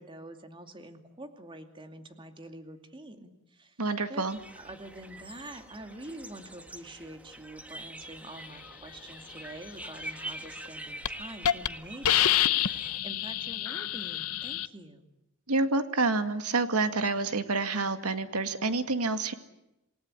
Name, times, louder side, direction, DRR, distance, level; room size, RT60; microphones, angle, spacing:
voice 1, 0.0-3.8 4.1-4.3 4.5-15.1, right 1 dB, 25° right, 6 dB, 2.5 m, -46 dB
voice 2, 3.8-4.4 15.5-19.3, right 3 dB, 90° right, 9 dB, 2.1 m, -28 dB
sound 1, 4.3-13.0, right 1 dB, 5° right, 1.4 m, -45 dB
Hiss, 10.5-10.7 11.0-11.1 11.4-11.7 12.0-14.7, left 11 dB, 80° left, 0.9 m, -27 dB
28.0 x 18.5 x 9.7 m, 0.90 s
head